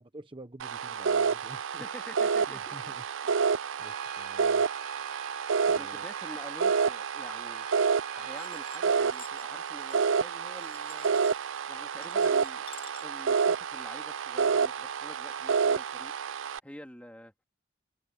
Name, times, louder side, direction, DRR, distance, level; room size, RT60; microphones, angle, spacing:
voice 1, 0.0-1.8 2.5-3.0 3.8-4.6 5.6-6.1, right 1 dB, 25° right, 1.0 m, -49 dB
sound 1, 0.6-16.6, right 6 dB, 85° right, 0.5 m, -29 dB
voice 2, 1.8-3.0 5.7-7.7 8.1-11.2 11.7-16.1 16.6-17.3, equal, 5° left, 2.4 m, -47 dB
Trumpet, 3.8-9.0, right 7 dB, 50° right, 1.6 m, -46 dB
sound 2, 8.4-13.9, left 7 dB, 30° left, 2.1 m, -53 dB
head